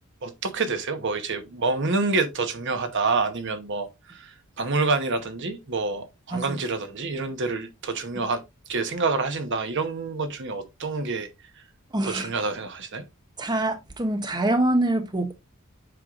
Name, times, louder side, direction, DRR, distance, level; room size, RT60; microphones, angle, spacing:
voice 1, 0.2-8.4 8.7-11.3 12.0-13.0, right 3 dB, 55° right, 1.0 m, -27 dB
voice 2, 11.9-12.3 13.4-15.3, right 1 dB, 20° right, 0.7 m, -24 dB
7.8 x 5.5 x 2.4 m
head